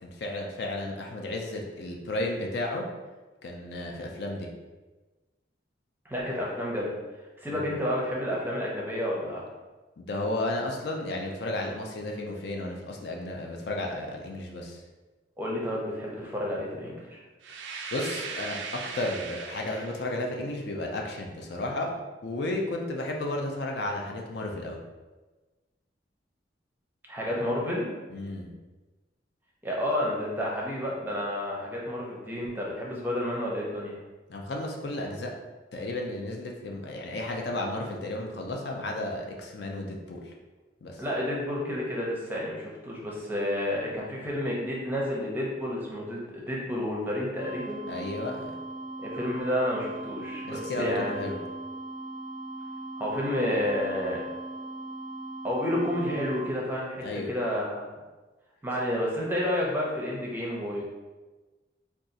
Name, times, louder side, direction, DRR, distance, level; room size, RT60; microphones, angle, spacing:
voice 1, 0.0-2.8 3.4-4.5 7.7-7.8 10.0-14.8 17.9-21.9 22.2-24.8 28.1-28.5 34.3-35.3 35.7-40.3 40.8-41.0 47.9-48.5 50.5-51.4 57.0-57.3, left 2 dB, 60° left, 1 dB, 0.4 m, -33 dB
voice 2, 6.0-6.9 7.4-9.5 15.4-17.2 27.1-27.9 29.6-33.9 41.0-47.8 49.0-51.4 53.0-54.2 55.4-57.9 58.6-60.8, left 1 dB, 10° right, -4 dB, 0.5 m, -30 dB
sound 1, 17.4-20.2, right 5 dB, 75° right, 0.3 m, -38 dB
sound 2, 47.4-56.4, right 2 dB, 80° left, 0.8 m, -39 dB
2.6 x 2.3 x 3.9 m, 1.2 s
head